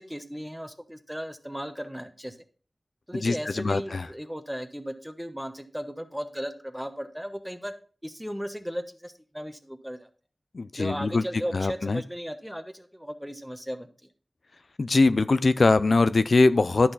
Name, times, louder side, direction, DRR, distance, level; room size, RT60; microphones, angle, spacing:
voice 1, 0.0-2.4 3.1-7.7 8.0-10.1 10.8-13.9, equal, 5° right, 7 dB, 1.1 m, -36 dB
voice 2, 3.1-4.1 10.5-11.2 11.5-12.0 14.8-16.9, left 3 dB, 75° left, 13 dB, 0.4 m, -22 dB
11.0 x 6.2 x 4.0 m, 0.39 s
wide cardioid pair, 65°, 0 cm